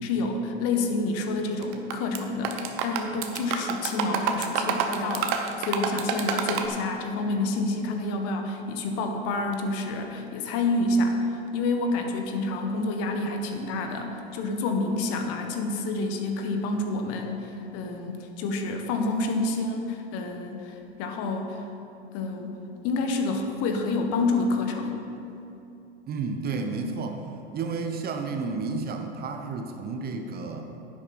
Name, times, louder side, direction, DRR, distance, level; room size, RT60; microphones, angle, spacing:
voice 1, 0.0-11.2 11.5-21.6 22.1-22.6 22.8-25.0, left 2 dB, 45° left, 4 dB, 1.3 m, -28 dB
sound 1, 1.6-2.2 2.4-6.7, right 7 dB, 50° right, 1.0 m, -28 dB
voice 2, 26.1-27.2 27.5-30.7, right 4 dB, 30° right, 4 dB, 0.9 m, -31 dB
10.5 x 8.6 x 4.3 m, 2.8 s
hypercardioid pair, 100°, 32 cm